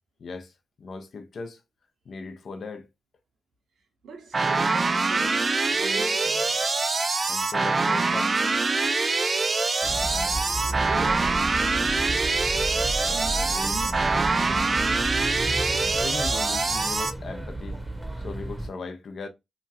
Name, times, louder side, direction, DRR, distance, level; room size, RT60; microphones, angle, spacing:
voice 1, 0.2-0.5 0.8-1.6 2.1-2.9 7.3-8.5 16.0-17.8 18.2-19.3, left 4 dB, 65° left, 0.6 m, -38 dB
voice 2, 4.0-6.7 10.7-11.6 13.1-15.2, right 3 dB, 80° right, 0.9 m, -40 dB
sound 1, 4.3-17.1, right 3 dB, 45° right, 0.4 m, -24 dB
sound 2, 9.8-18.7, right 2 dB, 15° right, 0.8 m, -33 dB
sound 3, 10.3-16.8, right 2 dB, 85° left, 1.1 m, -50 dB
2.9 x 2.3 x 2.7 m
supercardioid pair, 50°, 0 cm